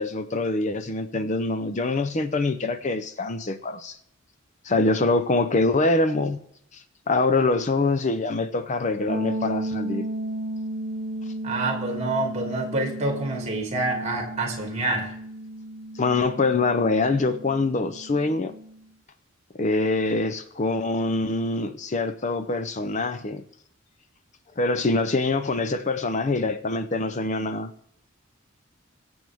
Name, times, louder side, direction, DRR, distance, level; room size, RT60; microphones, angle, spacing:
voice 1, 0.0-4.0 4.6-6.4 6.7-10.1 15.9-18.5 19.5-23.4 24.6-27.7, left 3 dB, 35° left, 10 dB, 0.6 m, -24 dB
sound 1, 9.1-18.8, right 1 dB, 55° right, 0.9 m, -34 dB
voice 2, 11.4-15.1, right 2 dB, 30° right, 2 dB, 2.5 m, -27 dB
21.5 x 7.9 x 3.5 m, 0.69 s
head